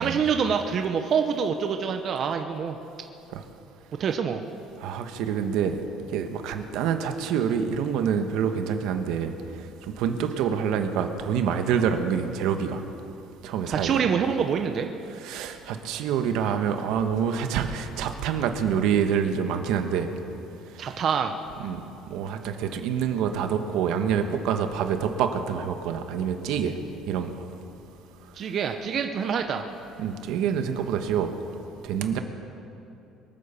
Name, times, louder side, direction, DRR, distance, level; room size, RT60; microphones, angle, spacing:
voice 1, 0.0-2.8 4.0-4.4 13.7-14.9 20.8-21.3 28.3-29.6, right 6 dB, 40° right, 5 dB, 0.7 m, -26 dB
voice 2, 4.8-5.8 6.1-9.3 9.8-12.8 13.4-14.0 15.2-20.1 20.7-21.0 21.6-21.8 22.1-26.7 27.1-27.3 30.0-31.3 31.8-32.2, right 7 dB, 70° right, 7 dB, 1.2 m, -26 dB
23.5 x 8.9 x 7.0 m, 2.9 s
cardioid pair, 160°, 0 cm